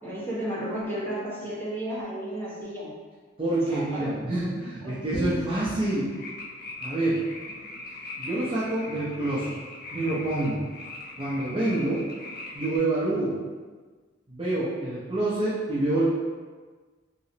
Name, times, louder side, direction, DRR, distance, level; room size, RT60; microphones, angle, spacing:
voice 1, 0.0-2.9 3.7-5.4 7.6-7.8, right 1 dB, 10° left, -11 dB, 1.2 m, -34 dB
voice 2, 3.4-6.1 6.8-7.3 8.2-9.5 9.9-10.6 11.2-12.1 12.5-13.4 14.3-16.1, right 2 dB, 25° right, -9 dB, 0.5 m, -27 dB
sound 1, 6.1-12.8, left 2 dB, 50° left, 0.4 m, -40 dB
3.0 x 2.8 x 2.8 m, 1.4 s
head